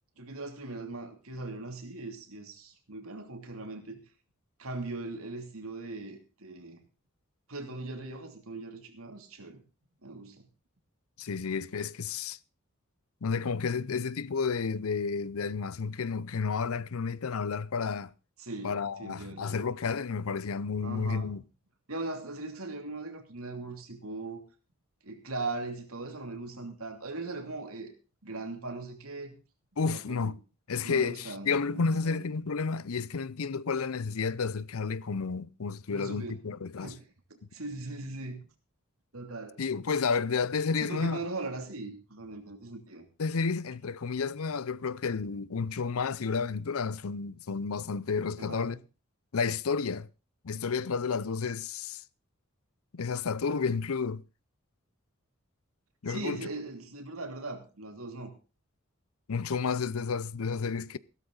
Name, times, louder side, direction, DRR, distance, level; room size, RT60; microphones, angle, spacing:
voice 1, 0.2-4.0 4.6-6.8 7.5-9.6 10.0-10.4 18.4-19.7 20.8-21.3 21.9-24.4 25.0-27.9 28.2-29.4 29.9-30.3 30.8-32.3 35.9-36.4 36.8-37.0 37.5-38.5 39.1-39.6 40.8-43.0 48.4-48.8 56.1-58.3, right 2 dB, 85° right, 2.9 m, -39 dB
voice 2, 11.2-12.4 13.2-18.1 18.6-21.4 29.8-30.4 30.7-36.9 39.6-41.2 43.2-48.8 49.3-50.1 50.4-52.0 52.9-54.2 56.0-56.4 59.3-61.0, left 5 dB, 85° left, 0.6 m, -31 dB
15.5 x 13.0 x 4.0 m
head